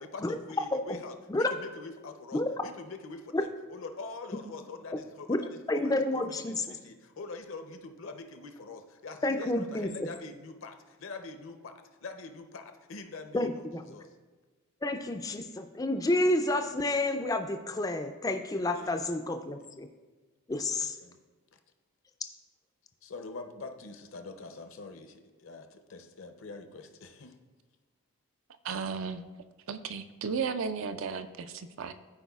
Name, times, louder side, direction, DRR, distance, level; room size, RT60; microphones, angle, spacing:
voice 1, 0.0-11.7 12.0-14.1 14.9-15.2 18.7-19.7 20.5-21.2 21.5-21.6 23.0-27.4, left 3 dB, 60° left, 7 dB, 0.6 m, -45 dB
voice 2, 5.7-6.6 9.2-9.9 13.3-13.8 14.8-19.9 20.5-21.0, left 2 dB, 15° left, 7 dB, 0.3 m, -29 dB
voice 3, 28.6-29.2 29.7-31.9, right 5 dB, 60° right, 10 dB, 0.4 m, -34 dB
14.0 x 4.7 x 2.3 m, 1.3 s
head